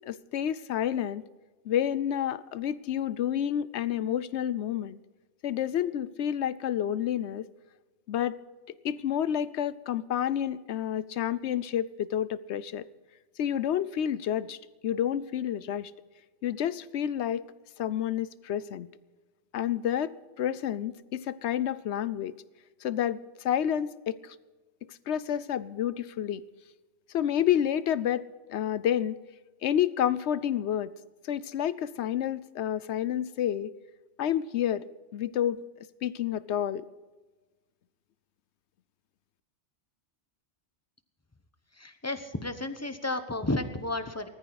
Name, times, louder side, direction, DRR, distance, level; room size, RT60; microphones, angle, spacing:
voice 1, 0.0-1.2 1.6-5.0 5.4-7.5 8.1-8.4 8.8-12.9 13.4-14.6 14.8-15.9 16.4-17.4 17.8-18.9 19.5-22.3 22.8-24.4 24.9-26.4 27.1-29.2 29.6-30.9 31.2-33.7 34.2-34.9 35.1-35.6 36.0-36.9, left 10 dB, 75° left, 18 dB, 0.9 m, -29 dB
voice 2, 41.7-44.3, left 2 dB, 15° left, 10 dB, 0.9 m, -32 dB
19.0 x 14.0 x 4.0 m, 1.2 s
omnidirectional pair, 1.2 m